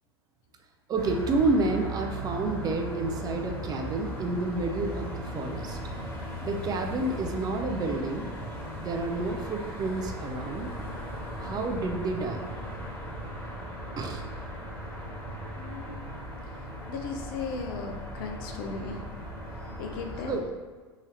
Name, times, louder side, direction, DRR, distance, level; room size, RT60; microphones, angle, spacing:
voice 1, 0.9-5.8 6.4-8.3 8.8-10.7 11.4-12.5 14.0-14.2 20.3-20.4, right 3 dB, 30° right, 4 dB, 0.5 m, -29 dB
sound 1, 1.0-20.4, right 1 dB, 15° left, 1.4 m, -37 dB
voice 2, 15.6-16.0 16.9-19.1 19.8-20.3, left 4 dB, 55° left, 3 dB, 0.6 m, -36 dB
3.7 x 2.7 x 3.2 m, 1.4 s
figure-of-eight pair, 85°, 14 cm